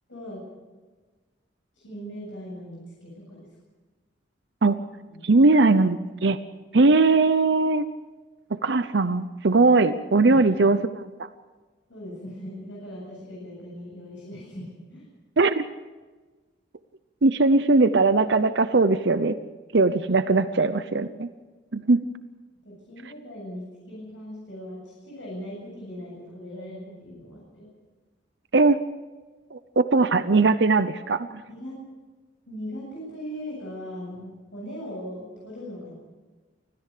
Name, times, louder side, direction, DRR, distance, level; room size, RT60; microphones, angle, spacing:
voice 1, 0.1-0.4 1.8-3.5 5.1-5.3 10.2-10.5 11.9-15.0 22.6-27.7 31.5-31.8 32.5-35.9, equal, 85° left, -4 dB, 7.6 m, -39 dB
voice 2, 5.2-6.4 6.7-7.9 8.5-11.1 15.4-15.6 17.2-19.4 19.7-21.3 21.7-22.0 28.5-28.8 29.5-31.4, right 3 dB, 65° right, 12 dB, 0.7 m, -20 dB
25.0 x 16.5 x 6.7 m, 1.3 s
head